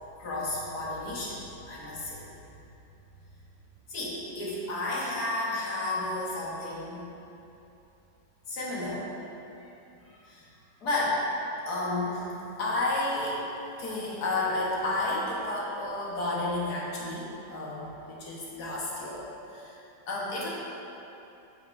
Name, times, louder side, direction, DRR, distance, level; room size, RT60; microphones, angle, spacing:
voice 1, 0.2-1.4 1.7-2.2 3.9-7.0 8.5-9.1 10.2-10.5 10.8-11.2 11.7-12.3 12.6-13.4 13.8-19.2 19.5-19.8 20.1-20.5, left 2 dB, 60° left, -6 dB, 1.8 m, -31 dB
8.6 x 5.9 x 2.6 m, 2.8 s
omnidirectional pair, 1.9 m